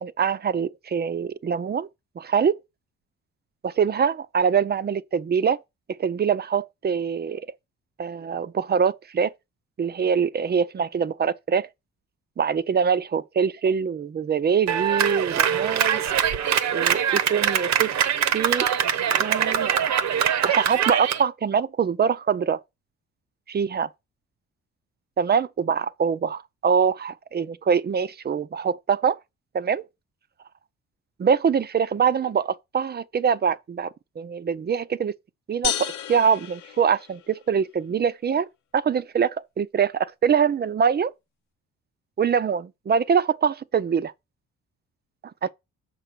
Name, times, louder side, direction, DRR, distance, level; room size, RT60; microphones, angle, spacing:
voice 1, 0.0-1.9 2.2-2.5 3.6-5.6 6.0-7.4 8.0-9.3 9.8-11.7 12.4-16.0 16.7-17.9 18.3-18.7 19.2-19.7 20.4-22.6 23.5-23.9 25.2-26.3 26.6-29.2 29.5-29.8 31.2-33.9 34.2-35.1 35.5-38.5 38.7-41.1 42.2-44.1 45.4-45.5, right 7 dB, 35° right, 0.6 m, -24 dB
Clapping, 14.7-21.2, right 8 dB, 65° right, 0.9 m, -23 dB
sound 1, 35.6-37.5, left 10 dB, 75° left, 0.8 m, -31 dB
6.9 x 4.6 x 6.7 m
cardioid pair, 90°, 30 cm